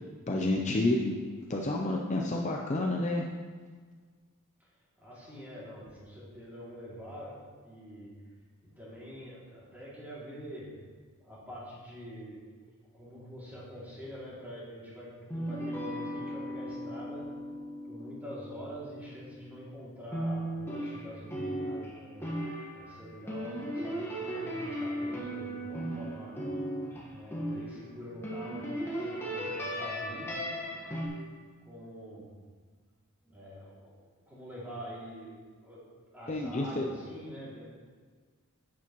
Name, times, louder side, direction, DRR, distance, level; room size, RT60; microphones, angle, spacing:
voice 1, 0.3-1.1 1.5-3.2 36.3-36.9, left 2 dB, 30° left, 0 dB, 0.5 m, -29 dB
voice 2, 5.0-8.1 8.6-10.8 11.2-17.3 17.8-22.3 22.7-26.5 27.0-30.6 31.6-32.3 33.2-34.0 34.3-35.4 35.6-35.9 36.1-37.6, equal, 5° right, -8 dB, 2.5 m, -45 dB
sound 1, 15.3-19.7 20.1-27.9 28.2-31.1, equal, 10° left, 1.3 m, -37 dB
10.5 x 8.4 x 3.0 m, 1.5 s
head